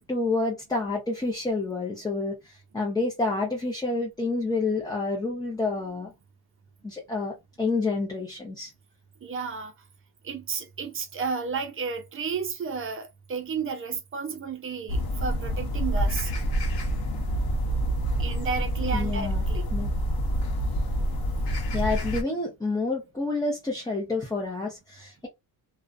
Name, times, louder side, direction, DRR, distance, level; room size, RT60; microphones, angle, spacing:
voice 1, 0.1-6.1 6.8-8.7 18.9-19.4 19.7-19.9 21.7-25.3, left 3 dB, 10° left, 0.6 m, -29 dB
voice 2, 9.2-9.7 10.2-16.3 18.2-19.7, right 5 dB, 30° right, 0.6 m, -32 dB
sound 1, 14.9-22.2, equal, 65° left, 1.0 m, -27 dB
2.5 x 2.1 x 2.4 m
cardioid pair, 135°, 40 cm